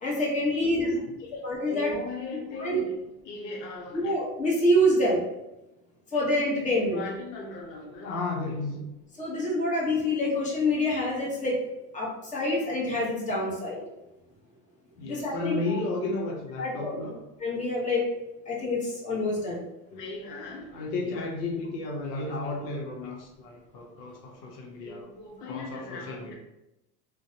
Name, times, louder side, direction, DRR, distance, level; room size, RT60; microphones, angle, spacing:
voice 1, 0.0-1.0 1.3-2.0 2.6-2.8 3.9-5.2 6.1-7.0 9.2-11.6 11.9-13.8 15.0-15.8 16.6-16.9 17.4-18.1 18.5-19.6, left 1 dB, 15° left, -5 dB, 0.9 m, -26 dB
voice 2, 0.5-1.3 1.7-4.2 6.9-8.8 15.0-17.2 19.9-26.4, left 3 dB, 80° left, 1 dB, 0.7 m, -35 dB
2.5 x 2.1 x 2.7 m, 0.94 s
supercardioid pair, 100°, 48 cm